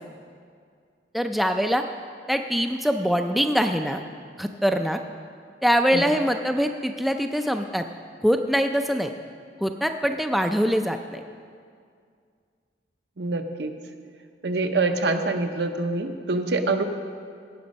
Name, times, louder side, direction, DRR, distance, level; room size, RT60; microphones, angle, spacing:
voice 1, 1.1-1.8 2.3-4.0 4.4-5.0 5.6-7.8 8.2-9.1 9.6-11.2, equal, ahead, 5 dB, 0.3 m, -23 dB
voice 2, 13.2-13.7 14.4-16.8, right 3 dB, 75° right, 6 dB, 0.7 m, -25 dB
16.5 x 6.2 x 5.3 m, 2.2 s
head